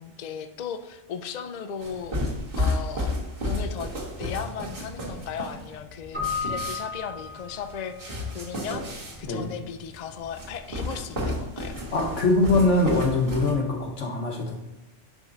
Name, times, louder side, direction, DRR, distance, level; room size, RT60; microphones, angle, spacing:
voice 1, 0.0-2.2 2.6-3.2 3.4-3.9 4.2-8.8 9.2-11.8, left 7 dB, 55° left, 7 dB, 0.5 m, -36 dB
sound 1, 1.8-13.5, left 1 dB, 45° right, 1.8 m, -32 dB
Keyboard (musical), 6.1-7.9, left 5 dB, 90° right, 3.4 m, -33 dB
voice 2, 11.9-14.6, left 2 dB, 75° left, 1 dB, 1.5 m, -23 dB
10.5 x 3.7 x 3.9 m, 0.97 s
omnidirectional pair, 1.3 m